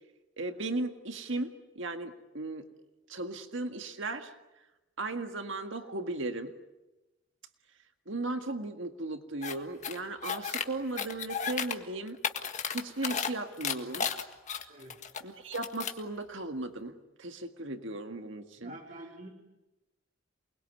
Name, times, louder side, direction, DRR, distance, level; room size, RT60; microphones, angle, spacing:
voice 1, 0.4-2.6 3.1-4.3 5.0-6.5 8.1-12.2 12.7-14.1 15.2-18.7, right 2 dB, 70° right, 7 dB, 1.8 m, -36 dB
sound 1, 9.4-9.5 9.8-10.6 11.0-11.7 12.1-13.3 13.6-15.2 15.5-16.0, left 6 dB, 35° left, 1.7 m, -33 dB
voice 2, 18.6-19.3, right 1 dB, 40° right, 0 dB, 4.3 m, -47 dB
28.5 x 21.5 x 9.5 m, 1.0 s
head